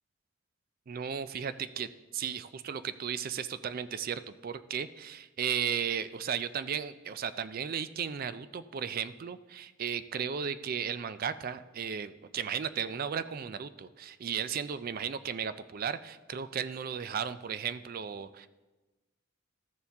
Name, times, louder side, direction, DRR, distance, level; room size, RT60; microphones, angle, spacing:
voice 1, 0.9-1.9 2.1-18.5, right 7 dB, 45° right, 14 dB, 0.4 m, -35 dB
14.0 x 7.1 x 3.4 m, 1.1 s
head